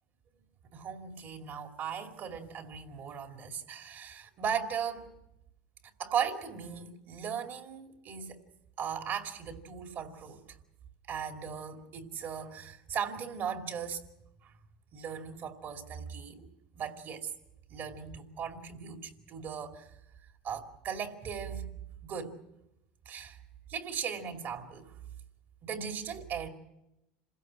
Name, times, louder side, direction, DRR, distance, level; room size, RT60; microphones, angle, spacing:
voice 1, 0.7-5.1 6.0-8.4 8.8-10.4 11.1-14.0 14.4-14.5 14.9-16.5 16.7-17.3 17.7-19.9 20.4-21.7 22.0-22.4 23.1-23.4 23.7-24.9 25.6-26.5, right 7 dB, 45° right, 2.6 m, -37 dB
27.0 x 16.5 x 7.6 m
hypercardioid pair, 95°, 5 cm